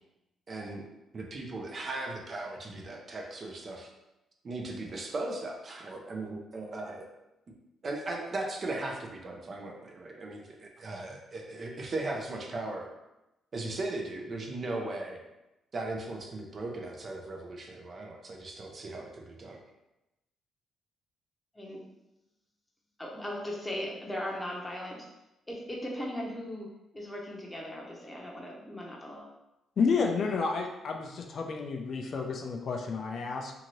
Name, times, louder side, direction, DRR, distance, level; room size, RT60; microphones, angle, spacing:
voice 1, 0.5-0.8 1.1-3.9 4.4-7.1 7.8-12.9 13.5-15.2 15.7-19.6, right 2 dB, 40° right, 1 dB, 0.5 m, -37 dB
voice 2, 23.0-25.1 25.5-26.7 26.9-29.3, left 1 dB, 15° left, -2 dB, 0.7 m, -38 dB
voice 3, 29.8-33.5, left 5 dB, 55° left, 2 dB, 0.4 m, -30 dB
2.8 x 2.5 x 3.0 m, 0.95 s
cardioid pair, 90°, 0 cm